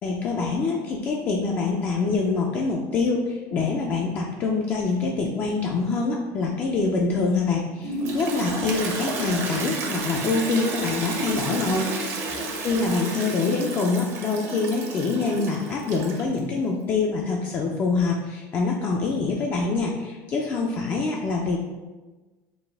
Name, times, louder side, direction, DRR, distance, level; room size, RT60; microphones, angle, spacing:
voice 1, 0.0-11.9 12.6-21.6, left 4 dB, 30° left, -1 dB, 0.4 m, -25 dB
Toilet flush, 7.8-16.4, right 2 dB, 40° right, 0.6 m, -31 dB
4.1 x 2.4 x 3.4 m, 1.2 s
cardioid pair, 155°, 7 cm